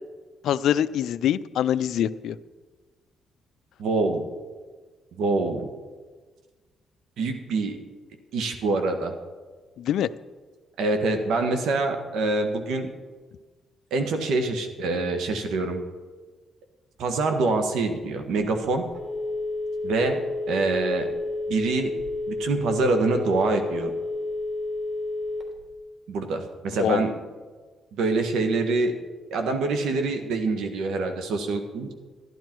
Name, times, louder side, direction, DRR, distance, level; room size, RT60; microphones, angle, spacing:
voice 1, 0.4-2.4 9.8-10.1 26.8-27.1, left 10 dB, 75° left, 16 dB, 0.4 m, -24 dB
voice 2, 3.8-4.2 5.2-5.7 7.2-7.8 8.3-9.1 10.8-12.9 13.9-15.8 17.0-18.8 19.8-21.1 21.5-22.0 22.3-23.9 26.1-27.2 27.9-29.0 29.3-31.9, right 3 dB, 80° right, 6 dB, 1.6 m, -25 dB
Telephone, 18.8-25.7, left 2 dB, 20° right, 3.1 m, -30 dB
12.5 x 11.5 x 4.6 m, 1.4 s
cardioid pair, 90°, 0 cm